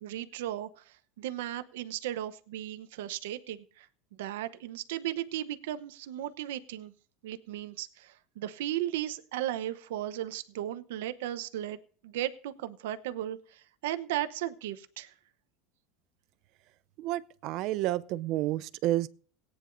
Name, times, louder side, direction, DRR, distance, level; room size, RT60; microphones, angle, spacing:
voice 1, 0.0-3.9 4.2-6.9 7.2-15.1, right 13 dB, 85° right, 0.9 m, -36 dB
voice 2, 17.0-19.1, right 15 dB, 55° right, 0.6 m, -30 dB
18.0 x 9.8 x 2.6 m
supercardioid pair, 125°, 0 cm